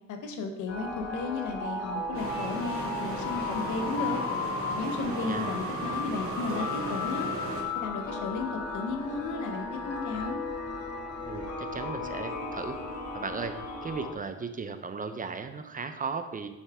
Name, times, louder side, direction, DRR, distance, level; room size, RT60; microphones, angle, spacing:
voice 1, 0.1-4.2 4.8-7.3 7.7-10.4, left 3 dB, 80° left, 5 dB, 1.0 m, -34 dB
sound 1, 0.7-14.1, left 3 dB, 55° left, 1.5 m, -35 dB
sound 2, 2.1-7.6, right 3 dB, 45° right, 1.9 m, -37 dB
voice 2, 5.1-5.5 11.3-12.8 13.1-13.5 13.8-16.5, right 5 dB, 30° right, 9 dB, 0.5 m, -36 dB
7.1 x 5.8 x 3.5 m, 1.0 s
cardioid pair, 90°, 30 cm